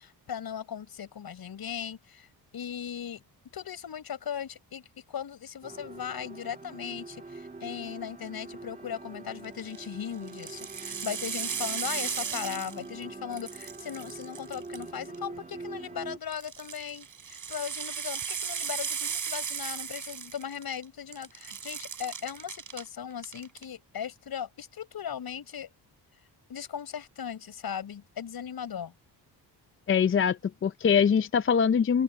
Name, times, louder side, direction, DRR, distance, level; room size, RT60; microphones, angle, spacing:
voice 1, 0.0-2.3 2.5-3.2 3.5-25.7 26.5-28.9, left 8 dB, 60° left, 7.2 m, -38 dB
sound 1, 5.6-16.2, right 3 dB, 20° right, 1.7 m, -44 dB
sound 2, 9.4-9.8 10.3-13.0 13.3-15.2 16.3-20.8 21.1-22.8 23.2-23.6, right 7 dB, 45° right, 5.8 m, -36 dB
voice 2, 29.9-32.0, left 7 dB, 30° left, 0.5 m, -23 dB
open air
cardioid pair, 125°, 41 cm